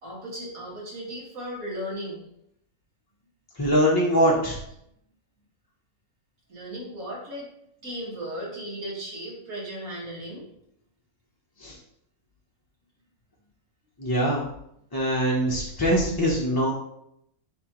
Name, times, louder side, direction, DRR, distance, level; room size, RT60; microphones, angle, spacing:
voice 1, 0.0-2.2 6.5-7.5 7.8-10.5 15.7-15.9, equal, 70° right, -4 dB, 2.3 m, -36 dB
voice 2, 3.6-4.6 11.6-11.8 14.0-14.5 14.9-16.7, equal, 20° left, -4 dB, 0.7 m, -23 dB
9.9 x 3.5 x 3.0 m, 0.76 s
omnidirectional pair, 1.5 m